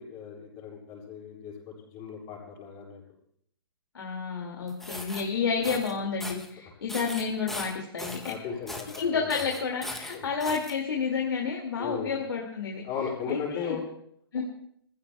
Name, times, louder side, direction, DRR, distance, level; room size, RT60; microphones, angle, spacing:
voice 1, 0.0-3.0 8.2-9.3 10.1-10.3 11.8-12.1 12.8-13.8, left 6 dB, 30° left, -4 dB, 6.8 m, -36 dB
voice 2, 3.9-8.2 9.0-12.8 13.3-13.8 14.3-14.4, left 5 dB, 75° left, 1 dB, 2.4 m, -30 dB
sound 1, 4.7-5.2 5.6-5.9 6.2-6.5 6.9-8.3 8.7-9.0 9.3-10.7, left 1 dB, ahead, 0.9 m, -39 dB
26.0 x 15.0 x 2.3 m, 0.70 s
hypercardioid pair, 150°, 13 cm